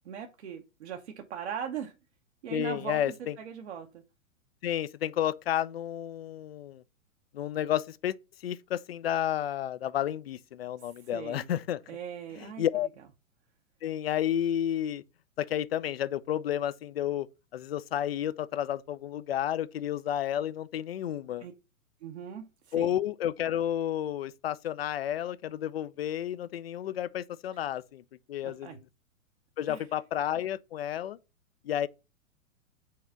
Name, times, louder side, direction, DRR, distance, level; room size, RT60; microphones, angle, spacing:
voice 1, 0.1-1.9 2.4-3.0 3.4-3.9 11.1-11.5 11.9-12.6 21.4-21.5 22.0-22.9 28.4-28.8 29.7-29.9, right 8 dB, 55° right, 0.9 m, -39 dB
voice 2, 2.5-3.4 4.6-6.8 7.3-8.1 8.4-11.8 12.3-12.9 13.8-15.0 15.4-17.3 17.5-21.5 22.7-28.0 28.3-28.9 29.6-31.2 31.6-31.9, left 11 dB, 50° left, 0.4 m, -31 dB
4.7 x 4.1 x 5.7 m
figure-of-eight pair, 110°, 41 cm